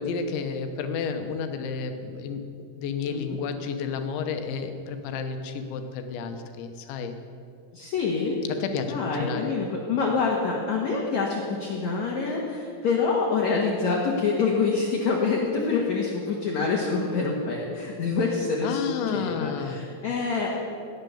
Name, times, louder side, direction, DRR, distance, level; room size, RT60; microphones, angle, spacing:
voice 1, 0.0-2.5 2.8-7.2 8.5-9.5 18.6-19.8, left 5 dB, 80° left, 6 dB, 3.3 m, -31 dB
voice 2, 3.0-3.4 7.7-8.3 8.9-20.6, left 4 dB, 60° left, -2 dB, 2.0 m, -26 dB
17.5 x 9.8 x 7.0 m, 2.3 s
omnidirectional pair, 5.3 m